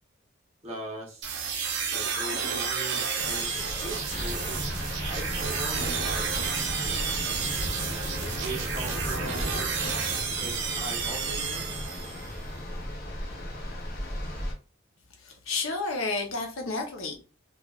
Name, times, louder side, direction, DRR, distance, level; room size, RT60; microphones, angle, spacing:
voice 1, 0.6-1.3 1.9-4.6 5.0-6.4 8.1-9.7 10.4-11.8, right 1 dB, 30° right, 1.0 m, -40 dB
sound 1, 1.2-12.4, right 6 dB, 60° right, 0.6 m, -31 dB
sound 2, 3.2-14.5, left 1 dB, 45° left, 0.7 m, -35 dB
voice 2, 15.2-17.2, left 3 dB, 85° left, 0.8 m, -31 dB
3.2 x 2.4 x 2.4 m
head